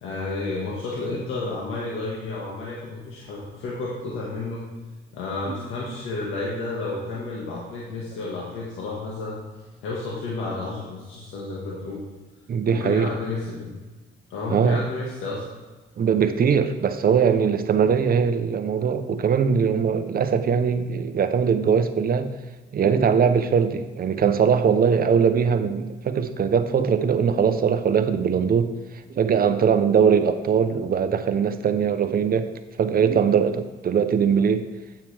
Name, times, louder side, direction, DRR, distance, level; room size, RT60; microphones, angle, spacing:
voice 1, 0.0-4.7 5.1-9.4 9.8-12.0 12.6-13.8 14.3-15.4, left 3 dB, 90° left, -5 dB, 1.7 m, -31 dB
voice 2, 12.5-13.1 14.5-14.8 16.0-22.3 22.7-28.7 29.1-32.5 32.8-34.7, right 7 dB, 50° right, 9 dB, 0.8 m, -21 dB
8.9 x 8.5 x 3.4 m, 1.3 s
cardioid pair, 90°, 20 cm